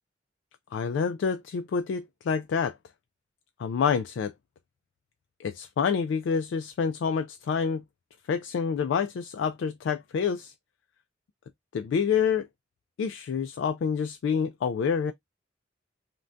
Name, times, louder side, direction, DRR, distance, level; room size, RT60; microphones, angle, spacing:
voice 1, 0.7-2.8 3.6-4.3 5.4-7.8 8.3-10.5 11.7-12.5 13.0-15.1, left 6 dB, 70° left, 0.3 m, -27 dB
2.5 x 2.2 x 3.2 m
head